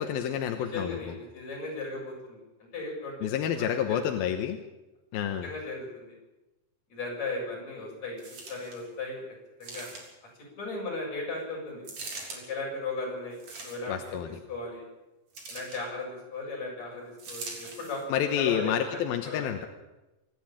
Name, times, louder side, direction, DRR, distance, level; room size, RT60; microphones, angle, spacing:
voice 1, 0.0-1.0 3.2-4.6 5.1-5.5 13.9-14.4 18.1-19.7, left 9 dB, 70° left, 6 dB, 2.5 m, -29 dB
voice 2, 0.6-2.4 2.7-3.2 3.5-4.2 5.4-6.1 6.9-8.2 8.5-9.2 9.6-9.9 10.6-11.8 12.3-14.8 15.5-18.0 18.4-18.7 19.3-19.5, left 3 dB, 40° left, -2 dB, 8.6 m, -36 dB
sound 1, 8.2-8.8 9.6-10.3 11.8-12.4 13.3-14.1 15.3-15.9 17.2-18.0 18.8-18.9, right 3 dB, 40° right, 4.5 m, -42 dB
25.5 x 11.5 x 8.8 m, 1.0 s
omnidirectional pair, 5.1 m